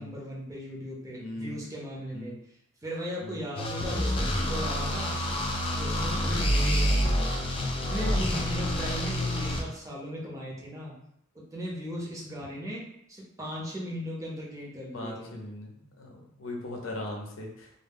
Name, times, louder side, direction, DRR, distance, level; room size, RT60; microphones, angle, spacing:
voice 1, 0.0-2.4 2.8-5.2 5.8-7.2 7.7-11.0 11.3-12.8 13.1-15.4, equal, 15° right, -4 dB, 0.6 m, -38 dB
voice 2, 1.1-1.6 2.1-2.3 3.2-3.4 8.0-8.4 14.9-17.7, left 1 dB, 80° left, 0 dB, 0.6 m, -39 dB
sound 1, 3.6-9.6, equal, 30° left, 0.3 m, -27 dB
2.0 x 2.0 x 3.4 m, 0.74 s
head